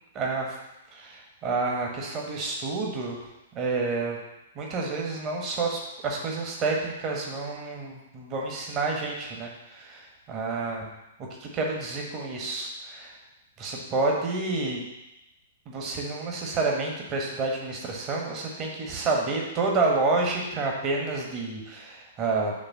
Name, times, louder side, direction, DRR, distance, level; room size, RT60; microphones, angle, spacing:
voice 1, 0.1-0.5 0.9-3.2 3.5-4.2 4.5-10.9 11.4-13.1 13.6-14.8 15.7-22.5, right 3 dB, 30° right, 0 dB, 1.3 m, -29 dB
6.7 x 3.4 x 6.1 m, 0.94 s
figure-of-eight pair, 110°, 0 cm